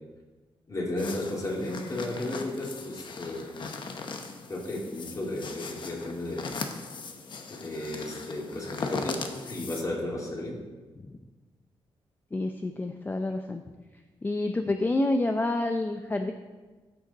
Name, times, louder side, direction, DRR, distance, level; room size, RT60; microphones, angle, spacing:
voice 1, 0.7-3.6 4.5-6.5 7.5-9.2 9.4-10.6, left 1 dB, 35° left, -2 dB, 2.6 m, -34 dB
sound 1, 1.0-9.8, left 4 dB, 55° left, 1.0 m, -39 dB
voice 2, 12.3-13.6 14.2-16.3, left 2 dB, 20° left, 6 dB, 0.5 m, -28 dB
13.5 x 6.5 x 4.1 m, 1.3 s
cardioid pair, 110°, 10 cm